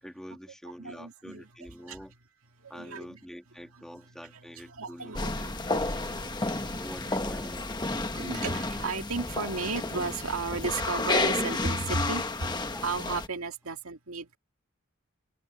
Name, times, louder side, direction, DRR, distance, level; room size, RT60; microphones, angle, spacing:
voice 1, 0.0-2.1 2.7-5.7 6.8-7.9 12.7-12.8, equal, ahead, 2.1 m, -46 dB
voice 2, 0.8-1.5 1.8-2.0 2.6-3.2 4.6-6.9 7.9-12.3 12.5-14.4, right 4 dB, 90° right, 2.1 m, -35 dB
sound 1, 5.1-13.3, left 2 dB, 20° left, 1.2 m, -31 dB
head